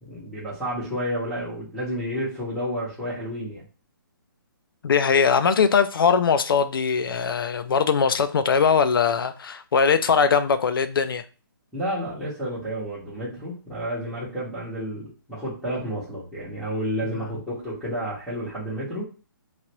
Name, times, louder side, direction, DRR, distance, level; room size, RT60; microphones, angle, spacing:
voice 1, 0.0-3.6 11.7-19.1, equal, ahead, 0.8 m, -30 dB
voice 2, 4.8-11.2 17.0-17.4, left 6 dB, 75° left, 0.5 m, -21 dB
3.1 x 2.5 x 2.9 m
hypercardioid pair, 170°, 12 cm